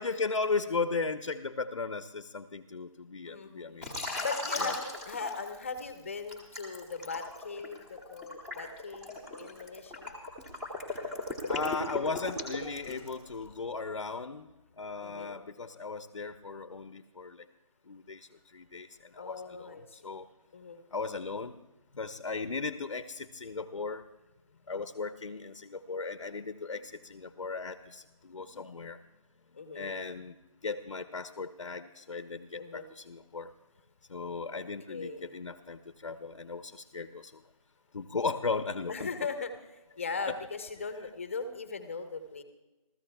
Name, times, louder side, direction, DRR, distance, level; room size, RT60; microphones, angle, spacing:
voice 1, 0.0-3.9 4.6-4.7 11.5-14.5 14.8-17.4 17.9-20.3 20.9-21.5 21.9-24.0 24.7-29.0 29.7-30.3 30.6-33.5 34.1-37.3 37.9-39.1 40.2-40.4, left 4 dB, 65° left, 9 dB, 0.9 m, -36 dB
voice 2, 3.3-3.8 4.2-4.8 5.1-10.1 15.0-15.4 19.2-20.0 20.5-20.8 29.5-30.0 32.6-32.9 34.5-34.6 34.9-35.4 38.9-42.4, left 4 dB, 25° left, 8 dB, 0.9 m, -39 dB
Liquid, 3.8-5.8 6.3-13.3, left 2 dB, 5° right, 0.9 m, -37 dB
29.0 x 14.0 x 2.3 m, 1.0 s
figure-of-eight pair, 170°, 18 cm